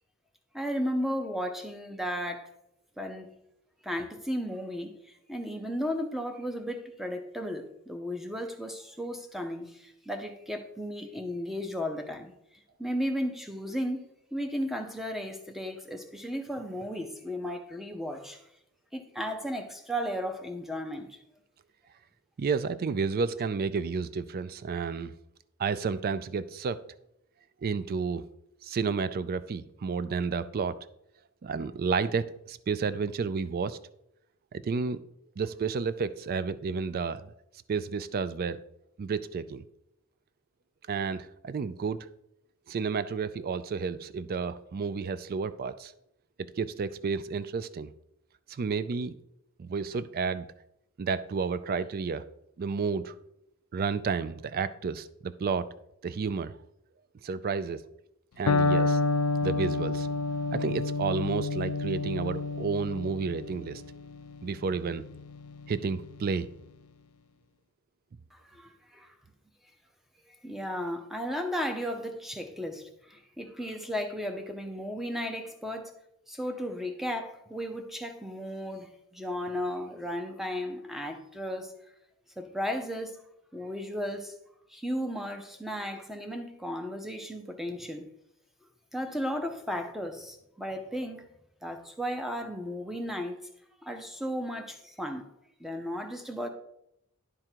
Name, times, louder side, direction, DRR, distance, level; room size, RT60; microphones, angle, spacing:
voice 1, 0.5-2.5 3.0-3.3 3.8-12.3 12.8-18.4 18.9-21.2 68.3-69.1 70.4-75.9 76.3-81.7 82.4-83.2 83.5-84.4 84.7-88.1 88.9-91.3 91.6-93.4 93.8-95.3 95.6-96.5, equal, ahead, 0.7 m, -35 dB
voice 2, 22.4-25.2 25.6-26.8 27.6-28.3 28.6-30.8 31.4-33.8 34.5-35.0 35.4-37.3 37.7-38.6 39.0-39.6 40.9-42.1 42.7-45.9 46.4-47.9 48.5-49.1 49.6-50.5 51.0-52.2 52.6-53.1 53.7-55.7 56.0-56.6 57.2-57.8 58.4-59.0 59.4-60.1 60.5-63.8 64.4-65.0 65.7-66.5, right 5 dB, 45° right, 0.4 m, -31 dB
Electric guitar, 58.5-66.3, left 3 dB, 80° left, 0.4 m, -30 dB
11.0 x 3.7 x 4.5 m
head